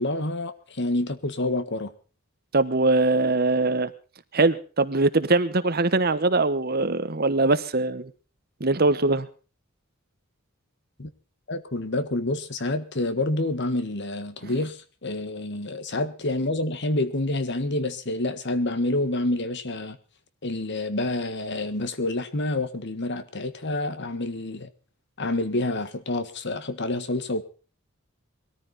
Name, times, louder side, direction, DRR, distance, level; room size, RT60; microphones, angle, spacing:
voice 1, 0.0-1.9 11.0-11.1 11.5-20.0 20.4-24.7 25.2-27.4, left 2 dB, 55° left, 1.6 m, -28 dB
voice 2, 2.5-3.9 4.3-8.1 8.6-9.3, right 3 dB, 50° right, 1.2 m, -22 dB
21.5 x 14.0 x 4.1 m
head